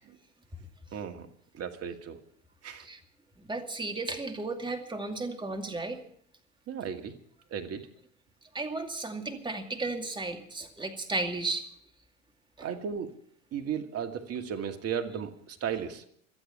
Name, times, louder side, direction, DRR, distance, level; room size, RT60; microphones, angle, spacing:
voice 1, 0.9-1.3 1.5-2.2 2.6-2.9 6.7-7.2 7.5-7.9 12.6-13.1 13.5-16.0, right 7 dB, 35° right, 5 dB, 2.2 m, -35 dB
voice 2, 3.4-6.0 8.5-11.6 12.6-12.7, right 3 dB, 10° right, 4 dB, 2.4 m, -34 dB
26.0 x 9.0 x 5.7 m, 0.64 s
hypercardioid pair, 75°, 39 cm